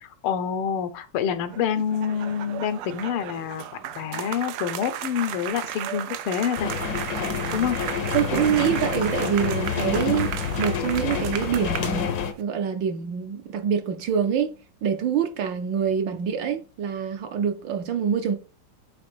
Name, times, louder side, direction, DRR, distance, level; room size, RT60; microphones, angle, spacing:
voice 1, 0.0-3.6 4.0-6.7 7.5-7.8, left 8 dB, 85° left, 1.6 m, -27 dB
sound 1, 1.4-12.4, right 11 dB, 85° right, 1.5 m, -35 dB
sound 2, 6.6-12.3, left 7 dB, 65° left, 1.0 m, -28 dB
voice 2, 8.1-10.3 10.6-12.1 12.4-14.5 14.8-18.4, right 8 dB, 70° right, 1.3 m, -25 dB
7.8 x 3.3 x 4.4 m
omnidirectional pair, 2.4 m